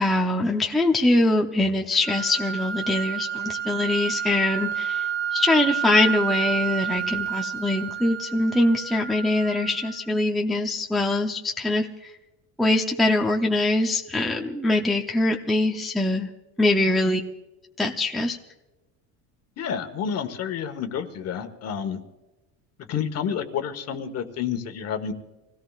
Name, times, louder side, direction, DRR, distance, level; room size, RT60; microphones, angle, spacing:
voice 1, 0.0-5.1 5.3-12.1 12.6-16.3 16.6-17.2 17.8-18.4, left 2 dB, ahead, 0 dB, 0.6 m, -23 dB
sound 1, 2.0-10.1, right 8 dB, 80° right, 2.0 m, -30 dB
voice 2, 19.6-22.0 22.9-25.1, left 7 dB, 40° left, 8 dB, 1.3 m, -29 dB
27.0 x 17.0 x 2.4 m, 1.1 s
cardioid pair, 155°, 38 cm